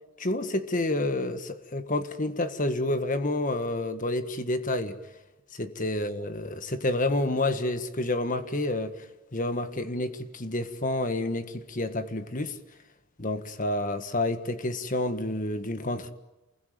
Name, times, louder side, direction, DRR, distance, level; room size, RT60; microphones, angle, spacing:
voice 1, 0.2-5.0 5.5-9.1 9.3-12.6 13.2-16.1, left 2 dB, 35° left, 1.5 m, -29 dB
28.0 x 21.5 x 9.3 m
head